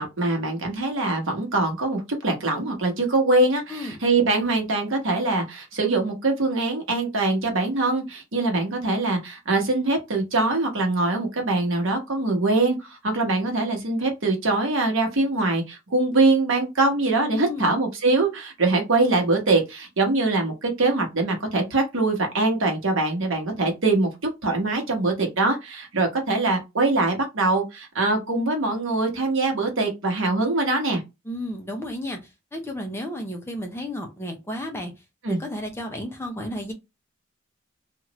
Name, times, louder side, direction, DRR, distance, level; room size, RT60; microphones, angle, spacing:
voice 1, 0.0-24.1 24.4-31.0 35.2-35.4, right 2 dB, 65° right, 1.0 m, -23 dB
voice 2, 17.3-17.7 31.2-34.9 35.3-36.7, left 1 dB, 10° left, 0.5 m, -33 dB
2.9 x 2.4 x 2.9 m
head